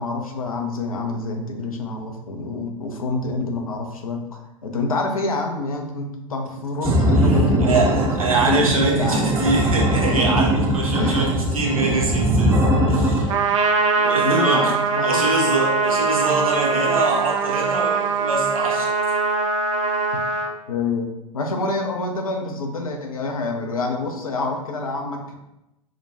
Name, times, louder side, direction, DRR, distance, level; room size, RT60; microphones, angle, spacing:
voice 1, 0.0-4.2 4.6-8.0 8.4-9.3 11.0-11.3 14.2-15.3 18.6-18.7 20.7-25.3, left 3 dB, 80° left, 3 dB, 0.6 m, -27 dB
voice 2, 6.7-12.6 12.9-13.3 14.0-14.7 15.0-18.9, right 3 dB, 75° right, -1 dB, 0.9 m, -24 dB
sound 1, 6.8-13.2, right 1 dB, 15° right, 0.7 m, -20 dB
Trumpet, 13.3-20.5, right 4 dB, 60° right, 0.5 m, -22 dB
4.9 x 2.2 x 2.7 m, 0.89 s
figure-of-eight pair, 90°, 18 cm